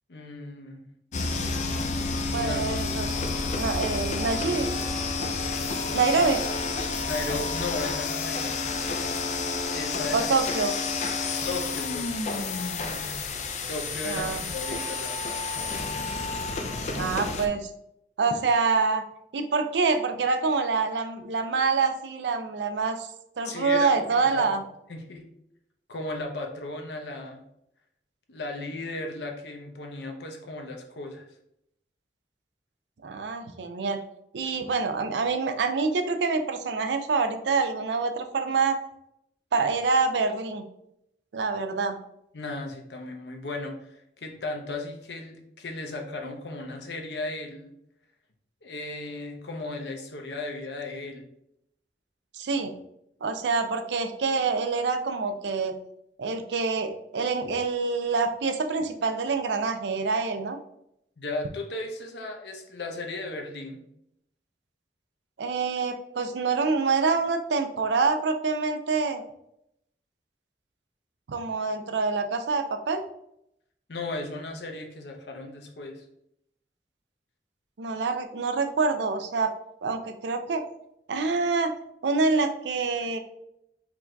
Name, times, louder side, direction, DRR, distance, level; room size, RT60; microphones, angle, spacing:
voice 1, 0.1-0.8 2.3-2.6 7.1-8.6 9.6-10.3 11.4-12.2 13.7-15.4 23.4-24.3 24.9-25.2 25.9-27.4 28.3-31.2 42.3-47.7 48.6-51.2 61.2-63.8 73.9-76.0, left 2 dB, 80° left, 2 dB, 0.8 m, -35 dB
sound 1, 1.1-17.5, left 4 dB, 40° left, 0.4 m, -30 dB
voice 2, 2.3-3.2 3.6-4.7 5.9-6.4 10.1-10.7 14.1-14.5 16.9-17.7 18.2-19.0 19.3-23.1 23.4-24.6 33.0-34.0 34.3-38.8 39.5-40.7 41.3-42.0 52.3-52.7 53.2-55.8 56.2-60.6 65.4-69.2 71.3-73.0 77.8-79.5 79.8-80.6 81.1-81.7 82.0-83.2, right 4 dB, 80° right, 7 dB, 0.5 m, -26 dB
4.6 x 3.9 x 2.3 m, 0.78 s
head